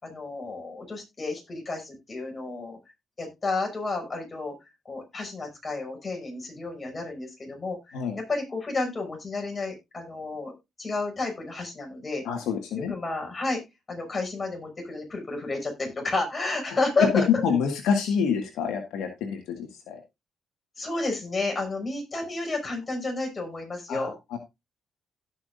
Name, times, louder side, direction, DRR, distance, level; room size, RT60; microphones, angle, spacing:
voice 1, 0.0-2.8 3.2-4.5 4.8-10.5 10.8-12.2 12.8-13.6 13.9-17.3 20.8-24.1, left 3 dB, 30° left, 1 dB, 5.9 m, -31 dB
voice 2, 12.2-12.9 17.4-19.4 19.9-20.0 23.9-24.4, left 6 dB, 90° left, 4 dB, 1.8 m, -27 dB
16.5 x 6.0 x 2.6 m, 0.22 s
cardioid pair, 90°, 0 cm